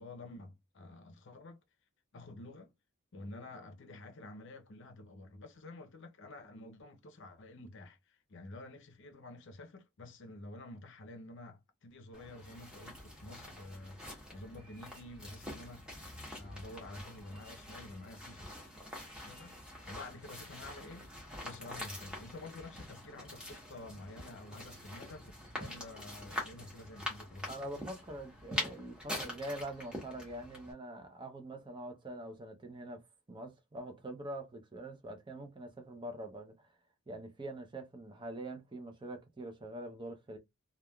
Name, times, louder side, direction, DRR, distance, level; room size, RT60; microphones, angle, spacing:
voice 1, 0.0-1.6 2.1-2.7 3.1-15.9 16.4-18.5 19.2-21.1 21.4-25.3 25.6-27.5, left 2 dB, 55° left, 0.6 m, -49 dB
sound 1, 12.1-30.7, left 1 dB, 5° right, 1.0 m, -45 dB
voice 2, 27.5-33.0 33.3-36.7 37.1-40.4, right 1 dB, 20° right, 0.6 m, -44 dB
3.3 x 2.3 x 2.3 m
head